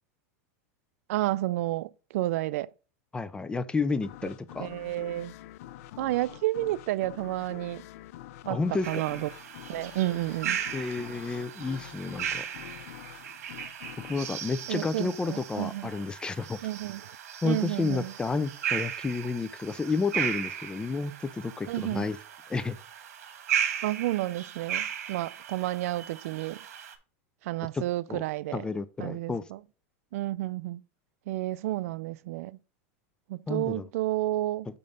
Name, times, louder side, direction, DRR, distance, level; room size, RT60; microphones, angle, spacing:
voice 1, 1.1-2.7 4.6-5.3 6.0-7.8 8.5-8.6 8.9-9.3 9.7-10.6 14.7-15.9 16.6-17.0 17.4-18.1 21.7-22.1 23.8-26.6 27.4-28.6 29.0-29.6 30.1-30.8 31.3-32.6 33.3-34.7, right 16 dB, 70° right, 0.4 m, -31 dB
voice 2, 3.1-4.7 8.5-9.0 10.7-12.5 14.1-16.6 17.4-22.2 22.5-22.8 27.7-27.8 28.1-28.2 28.5-29.4 33.5-33.9, left 4 dB, 10° left, 0.4 m, -31 dB
sound 1, 4.0-15.5, left 13 dB, 65° left, 0.4 m, -47 dB
sound 2, 8.8-26.9, right 9 dB, 85° right, 1.3 m, -36 dB
6.6 x 5.4 x 3.9 m
supercardioid pair, 145°, 8 cm